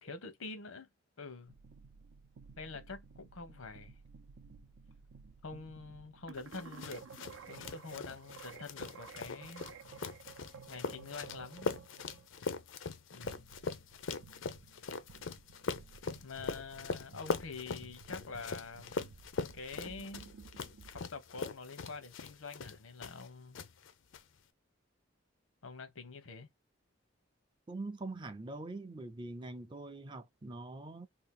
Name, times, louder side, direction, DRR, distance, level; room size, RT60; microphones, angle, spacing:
voice 1, 0.0-0.9 1.2-1.5 2.6-4.0 5.4-7.0 7.5-9.6 10.7-11.8 13.1-13.5 16.2-19.0 19.5-20.3 20.9-23.6 25.6-26.5, left 4 dB, 90° left, 0.9 m, -46 dB
sound 1, 1.5-21.0, right 5 dB, 80° right, 0.5 m, -54 dB
sound 2, 6.5-23.3 23.5-24.2, left 4 dB, 70° left, 0.5 m, -41 dB
voice 2, 27.7-31.1, right 2 dB, 25° right, 0.4 m, -43 dB
2.8 x 2.4 x 3.7 m
head